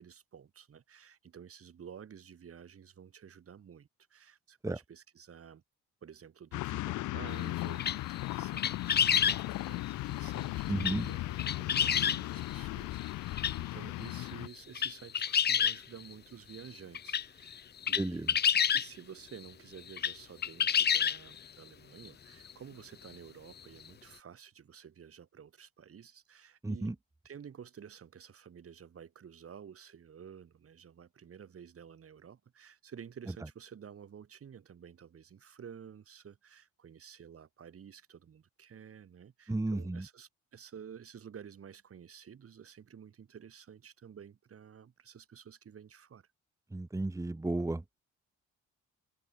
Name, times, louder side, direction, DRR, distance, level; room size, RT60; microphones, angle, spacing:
voice 1, 0.0-5.6 6.0-17.6 17.9-18.4 18.7-27.0 27.2-46.3, right 8 dB, 50° right, 3.2 m, -51 dB
sound 1, 6.5-14.5, left 17 dB, 80° left, 0.6 m, -37 dB
sound 2, 7.8-8.2 8.6-9.5 10.8-11.1 11.4-12.2 13.0-13.1 13.4-13.6 14.1-14.2 14.5-16.1 16.5-16.6 16.9-18.9 19.9-20.1 20.4-21.4 22.1-22.2 22.5-22.6 23.9-24.0, left 8 dB, 35° left, 0.6 m, -28 dB
voice 2, 10.7-11.1 18.0-18.3 26.6-26.9 39.5-40.0 46.7-48.0, right 2 dB, 10° right, 1.1 m, -33 dB
cardioid pair, 90°, 30 cm